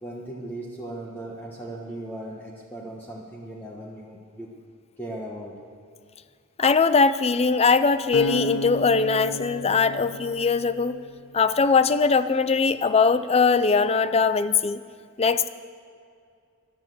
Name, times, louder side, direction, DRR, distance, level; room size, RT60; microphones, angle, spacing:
voice 1, 0.0-4.5 5.0-5.6, right 1 dB, 10° left, -3 dB, 1.4 m, -37 dB
voice 2, 6.6-11.0 11.3-14.8 15.2-15.5, left 4 dB, 30° left, 14 dB, 0.5 m, -21 dB
Acoustic guitar, 8.1-11.3, left 1 dB, 75° left, 0.8 m, -33 dB
15.0 x 11.5 x 7.7 m, 2.3 s
head